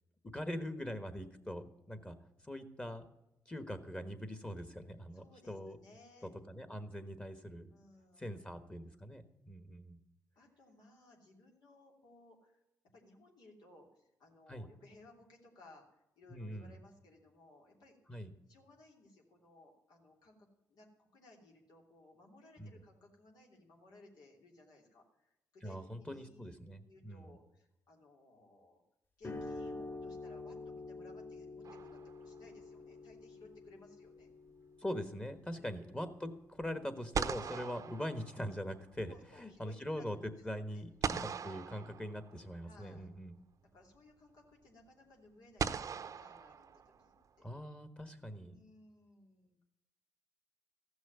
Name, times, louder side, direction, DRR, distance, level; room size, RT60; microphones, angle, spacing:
voice 1, 0.3-2.1 2.4-3.0 3.5-5.8 6.2-7.7 8.2-10.0 14.5-14.7 16.3-16.7 18.1-18.3 22.6-22.8 25.6-27.3 34.8-43.4 47.4-48.5, equal, 15° left, 10 dB, 1.4 m, -42 dB
voice 2, 5.1-6.3 7.7-8.8 10.3-12.6 12.9-26.5 26.8-28.8 29.2-34.3 35.5-35.7 39.1-40.1 40.3-41.4 42.6-43.1 43.7-47.5 48.3-49.5, left 2 dB, 80° left, -1 dB, 3.1 m, -61 dB
sound 1, 29.2-36.4, left 2 dB, 30° left, 4.0 m, -48 dB
sound 2, 31.7-32.5 36.6-36.7 37.1-38.9 41.0-42.6 44.0-44.1 45.6-47.2, right 6 dB, 55° right, 0.7 m, -40 dB
14.5 x 6.3 x 9.2 m, 0.88 s
cardioid pair, 90°, 7 cm